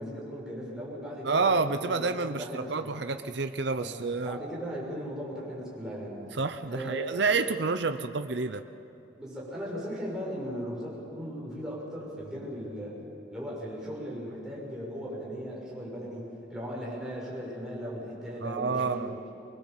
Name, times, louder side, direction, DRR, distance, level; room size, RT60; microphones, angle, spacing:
voice 1, 0.0-2.9 3.8-6.2 6.7-7.5 7.9-8.0 9.2-13.0 13.3-19.3, equal, 5° right, -5 dB, 6.4 m, -38 dB
voice 2, 1.2-4.4 6.3-8.6 18.4-19.1, right 4 dB, 60° right, 8 dB, 0.7 m, -29 dB
23.5 x 21.5 x 7.3 m, 2.8 s
head